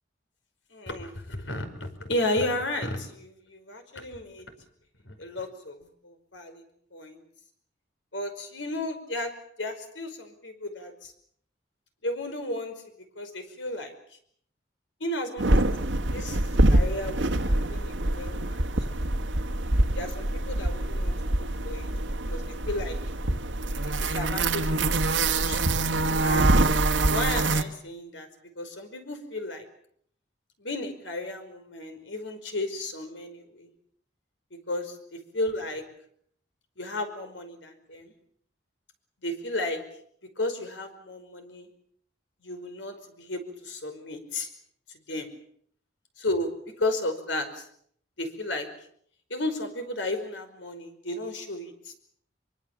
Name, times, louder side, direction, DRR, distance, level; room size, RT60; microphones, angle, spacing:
voice 1, 0.7-4.5 5.0-6.6 6.9-7.2 8.1-9.3 9.6-11.1 12.0-12.7 13.2-14.0 15.0-15.7 16.1-16.4 16.7-18.6 19.0-19.2 19.9-21.9 22.3-23.0 23.8-25.6 26.2-26.5 27.1-28.3 28.6-29.7 30.6-33.7 34.5-35.8 36.8-38.1 39.2-39.8 40.4-41.7 42.4-44.5 45.1-45.3 46.2-47.7 48.2-48.7 49.3-51.9, left 1 dB, 85° left, 7 dB, 5.2 m, -33 dB
sound 1, 15.4-27.6, right 2 dB, 85° right, 1.7 m, -25 dB
24.5 x 24.0 x 7.4 m, 0.65 s
head